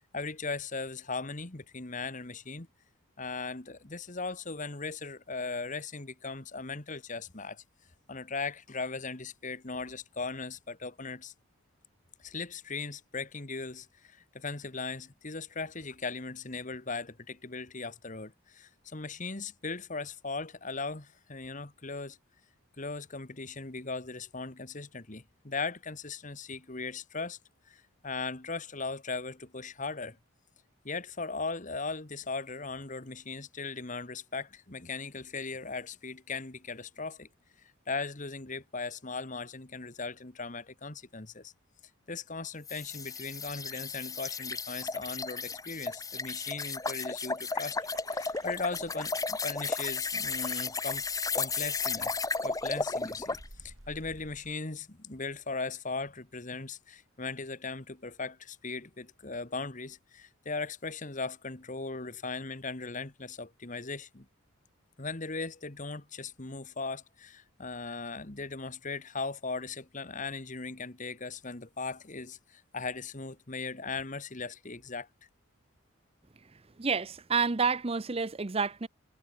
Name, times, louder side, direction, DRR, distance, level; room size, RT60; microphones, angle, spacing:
voice 1, 0.1-2.7 3.2-7.6 8.1-11.3 12.2-22.2 22.8-27.4 27.7-30.2 30.8-37.3 37.9-41.5 42.1-51.0 51.3-52.1 52.4-64.3 65.0-75.1, left 4 dB, 35° left, 1.5 m, -38 dB
sound 1, 42.7-53.5, left 4 dB, 15° left, 1.5 m, -34 dB
sound 2, 47.7-54.6, right 2 dB, 65° right, 3.9 m, -55 dB
voice 2, 76.8-78.9, right 5 dB, 25° right, 0.6 m, -29 dB
head